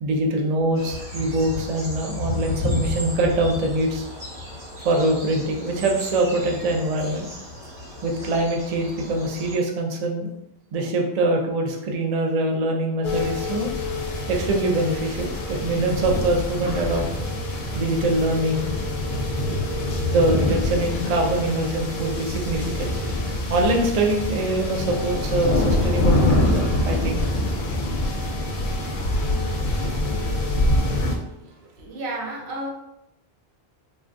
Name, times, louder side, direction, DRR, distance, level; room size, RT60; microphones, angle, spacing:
voice 1, 0.0-4.0 4.8-7.3 8.0-10.3 10.7-13.7 14.3-17.0 17.7-18.7 20.1-23.0 23.5-27.2, right 1 dB, 55° right, 1 dB, 0.4 m, -23 dB
sound 1, 0.7-9.6, left 2 dB, 35° right, 0.8 m, -33 dB
sound 2, 13.0-31.2, left 1 dB, 60° left, 0.6 m, -26 dB
Fixed-wing aircraft airplane, 25.3-30.8, left 1 dB, 85° left, 0.9 m, -28 dB
voice 2, 31.3-32.7, right 2 dB, 75° right, 0 dB, 0.9 m, -33 dB
3.3 x 2.2 x 2.5 m, 0.85 s
omnidirectional pair, 1.1 m